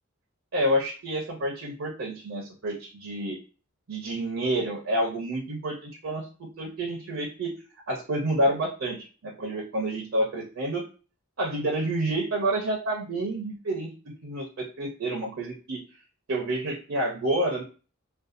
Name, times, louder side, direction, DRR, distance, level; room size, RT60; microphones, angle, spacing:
voice 1, 0.5-3.4 3.9-7.5 7.9-10.8 11.4-15.8 16.3-17.6, right 1 dB, 65° right, 1 dB, 0.5 m, -29 dB
2.6 x 2.2 x 2.4 m, 0.36 s
head